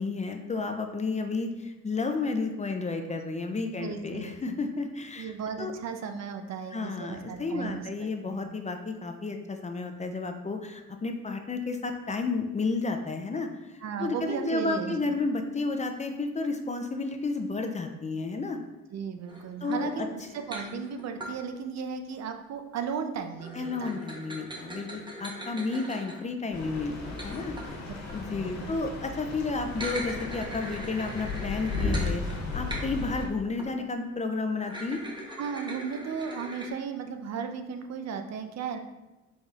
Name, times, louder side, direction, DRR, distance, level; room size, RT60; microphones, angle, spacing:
voice 1, 0.0-5.3 5.6-5.7 6.7-13.5 13.7-18.6 19.6-20.1 23.5-27.8 28.1-35.0, left 3 dB, 25° left, 5 dB, 0.4 m, -32 dB
voice 2, 3.7-4.3 5.2-8.5 13.8-15.0 18.9-24.0 27.9-28.0 28.3-28.8 35.4-38.8, right 6 dB, 60° right, 6 dB, 0.6 m, -35 dB
sound 1, 19.3-21.4 23.4-28.3 29.6-33.2 33.6-33.7 34.6-36.7, right 1 dB, 15° right, 0.9 m, -41 dB
sound 2, 26.5-33.3, left 3 dB, 65° left, 1.3 m, -35 dB
4.9 x 4.0 x 2.4 m, 1.1 s
cardioid pair, 90°, 30 cm